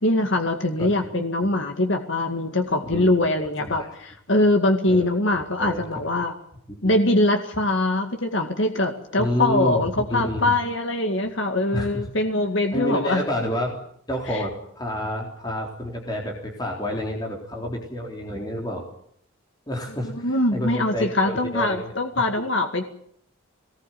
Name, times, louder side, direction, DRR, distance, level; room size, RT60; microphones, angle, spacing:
voice 1, 0.0-6.3 6.8-13.2 14.3-14.4 20.1-22.8, left 2 dB, 65° left, 5 dB, 2.1 m, -23 dB
voice 2, 0.8-1.5 2.8-3.1 3.6-3.9 4.9-5.9 6.1-6.2 6.8-6.9 9.2-10.5 11.7-12.1 12.7-13.8 14.1-18.8 19.7-22.2, equal, 20° left, 0 dB, 3.9 m, -29 dB
22.0 x 19.5 x 9.3 m, 0.68 s
head